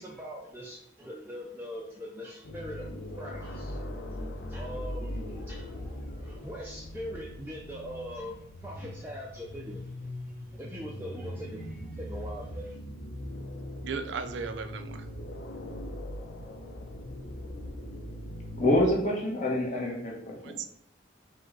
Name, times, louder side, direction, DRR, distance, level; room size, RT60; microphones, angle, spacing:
voice 1, 0.0-3.8 4.1-4.2 4.5-12.8, equal, 10° right, -4 dB, 0.4 m, -42 dB
sound 1, 2.4-18.9, left 1 dB, 80° left, 0.6 m, -40 dB
voice 2, 13.8-15.1 20.4-20.7, right 5 dB, 75° right, 9 dB, 0.4 m, -36 dB
voice 3, 18.6-20.6, left 1 dB, 40° left, -1 dB, 1.0 m, -27 dB
5.1 x 2.2 x 3.9 m, 0.72 s
head